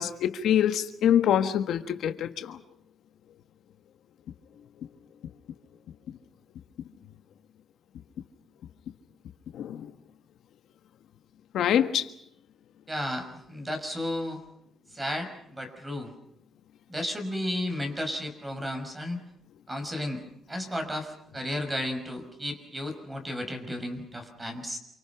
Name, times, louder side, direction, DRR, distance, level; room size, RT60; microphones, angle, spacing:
voice 1, 0.0-2.6 9.5-9.9 11.5-12.1, left 10 dB, 75° left, 1.4 m, -25 dB
voice 2, 12.9-14.4 14.9-16.1 16.9-19.2 19.7-20.2 20.5-24.8, left 1 dB, 15° right, 5.8 m, -33 dB
28.5 x 24.5 x 6.0 m
cardioid pair, 115°, 0 cm